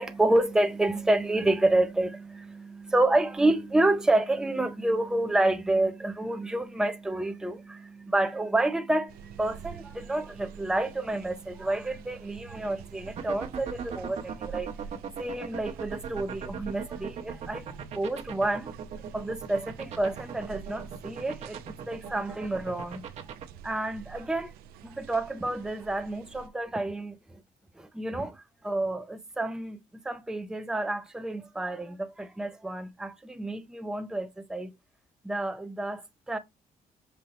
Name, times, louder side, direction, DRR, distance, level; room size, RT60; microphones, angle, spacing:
voice 1, 0.0-14.7 15.2-18.7 19.1-21.6 21.9-23.1 23.6-24.5 24.8-27.4 27.8-29.8 30.0-34.7 35.2-36.4, right 2 dB, 5° right, 0.5 m, -29 dB
sound 1, 9.1-26.5, right 8 dB, 85° right, 0.5 m, -47 dB
sound 2, 13.1-23.4, right 8 dB, 50° right, 1.1 m, -37 dB
5.4 x 2.7 x 3.2 m
cardioid pair, 110°, 15 cm